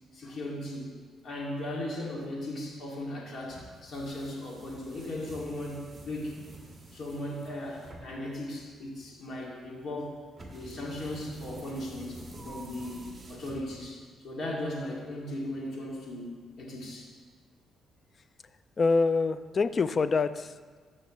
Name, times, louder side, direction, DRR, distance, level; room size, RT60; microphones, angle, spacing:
voice 1, 0.1-0.9 1.2-6.4 6.9-10.2 10.5-17.1, left 1 dB, 55° left, -4 dB, 2.4 m, -37 dB
sound 1, 3.5-14.1, right 1 dB, 20° right, 1.7 m, -48 dB
voice 2, 18.8-20.8, left 4 dB, 40° left, 13 dB, 0.4 m, -26 dB
14.0 x 6.1 x 3.2 m, 1.5 s
cardioid pair, 90°, 0 cm